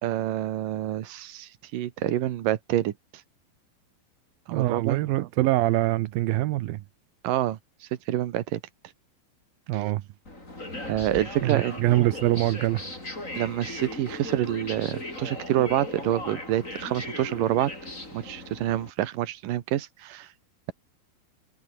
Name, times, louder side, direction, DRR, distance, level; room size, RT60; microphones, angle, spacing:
voice 1, 0.0-2.9 4.5-5.0 7.2-7.6 8.1-8.6 9.7-9.8 10.8-11.8 13.4-17.7 18.1-20.3, right 13 dB, 60° right, 2.5 m, -27 dB
voice 2, 4.5-6.8 9.7-10.0 11.4-12.8, right 16 dB, 80° right, 2.1 m, -24 dB
sound 1, 10.2-18.9, left 2 dB, 15° left, 7.2 m, -38 dB
omnidirectional pair, 5.4 m